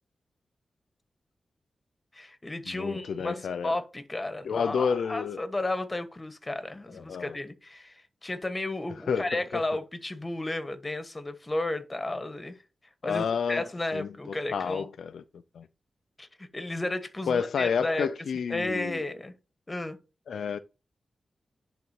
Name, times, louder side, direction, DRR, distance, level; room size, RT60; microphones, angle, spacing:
voice 1, 2.1-12.6 13.0-14.9 16.2-18.1 18.5-19.3 19.7-20.0, left 2 dB, 25° left, 1.3 m, -33 dB
voice 2, 2.7-3.8 4.4-5.4 6.9-7.4 9.1-9.6 13.0-13.6 13.9-15.2 15.6-15.7 17.3-19.0 20.3-20.6, left 6 dB, 90° left, 0.4 m, -30 dB
10.5 x 3.9 x 2.9 m
cardioid pair, 65°, 0 cm